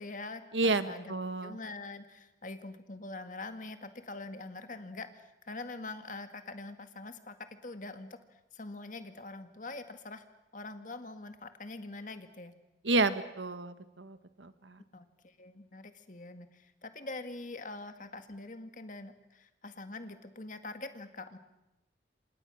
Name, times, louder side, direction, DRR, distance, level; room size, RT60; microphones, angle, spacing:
voice 1, 0.0-1.1 1.4-10.2 10.5-12.6 14.9-21.4, left 2 dB, 45° left, 8 dB, 1.9 m, -44 dB
voice 2, 0.5-1.6 12.8-14.8, right 3 dB, 85° right, 11 dB, 1.5 m, -31 dB
28.0 x 26.5 x 6.4 m, 0.98 s
head